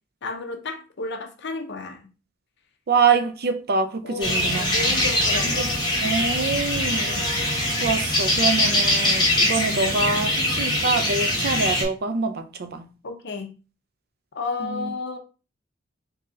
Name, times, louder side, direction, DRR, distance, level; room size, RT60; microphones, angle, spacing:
voice 1, 0.2-2.0 4.0-5.7 9.7-10.0 13.0-13.5 14.3-15.2, left 3 dB, 60° left, 0.7 m, -32 dB
voice 2, 2.9-4.9 5.4-5.7 6.0-7.2 7.8-10.3 10.6-12.9 14.6-14.9, right 4 dB, 55° right, 0.5 m, -25 dB
sound 1, 4.2-11.8, left 1 dB, 25° left, 1.3 m, -22 dB
3.8 x 2.8 x 3.7 m
head